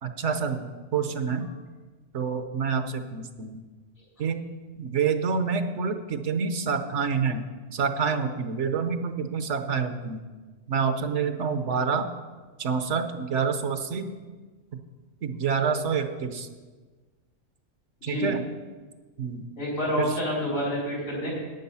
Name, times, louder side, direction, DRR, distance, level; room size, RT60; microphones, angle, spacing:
voice 1, 0.0-1.5 2.1-3.6 4.2-4.4 4.8-10.2 10.7-12.1 12.6-14.1 15.2-16.5 18.0-18.4 19.2-19.5 20.0-20.1, right 6 dB, 65° right, 8 dB, 1.1 m, -27 dB
voice 2, 19.6-21.3, equal, 85° left, -4 dB, 4.6 m, -28 dB
11.0 x 8.9 x 5.6 m, 1.4 s
omnidirectional pair, 1.3 m